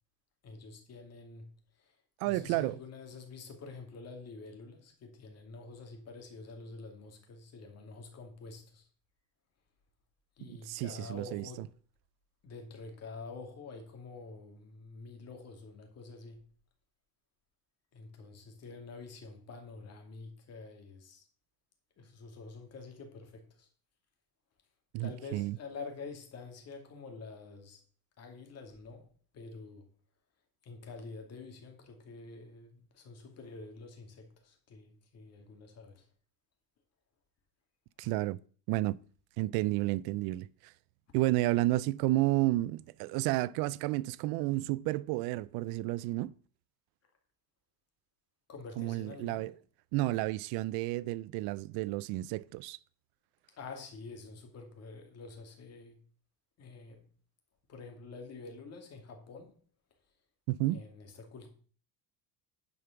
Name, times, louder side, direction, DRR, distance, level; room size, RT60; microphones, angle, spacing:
voice 1, 0.4-2.0 2.2-8.9 10.4-11.7 12.4-16.5 17.9-21.3 22.0-23.7 25.0-27.8 28.2-29.9 30.6-36.1 48.5-49.5 53.6-56.0 56.6-57.1 57.7-59.6 60.7-61.5, left 4 dB, 45° left, 2.5 m, -48 dB
voice 2, 2.2-2.8 10.4-11.4 24.9-25.6 38.0-38.4 38.7-39.0 39.4-40.5 41.1-46.3 48.8-49.5 49.9-52.8 60.5-60.8, right 18 dB, 85° right, 0.5 m, -31 dB
10.0 x 5.3 x 5.9 m
cardioid pair, 140°, 36 cm